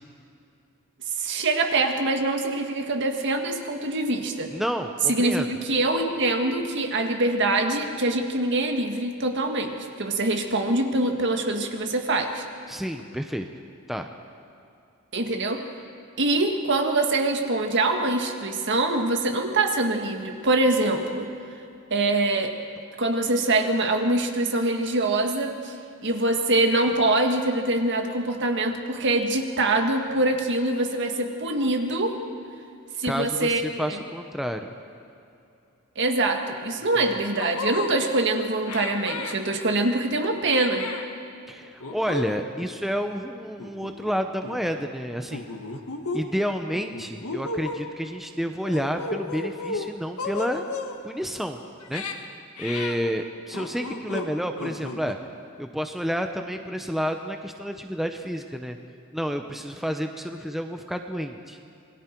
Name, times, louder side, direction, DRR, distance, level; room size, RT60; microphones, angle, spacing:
voice 1, 1.2-4.5 5.1-12.4 15.1-15.6 16.2-21.3 21.9-22.6 23.0-25.7 26.0-32.2 33.0-34.0 35.9-40.9, right 2 dB, 55° right, 4 dB, 1.8 m, -24 dB
voice 2, 4.5-5.5 12.7-13.5 13.9-14.1 33.0-34.7 41.5-45.5 46.1-50.6 51.0-51.6 51.9-52.0 52.6-55.2 55.6-58.8 59.1-61.6, equal, ahead, 5 dB, 0.7 m, -30 dB
sound 1, 36.8-36.9 37.3-37.9 38.7-39.3 40.4-41.0 41.8-42.3 42.6-42.8 43.6-44.1 44.4-44.7 45.3-46.2 46.7-47.8 48.6-49.9 50.2-51.0 51.8-52.1 52.6-53.0 53.5-54.3 54.6-55.1, left 3 dB, 85° left, 1.7 m, -33 dB
27.5 x 20.5 x 4.6 m, 2.7 s
head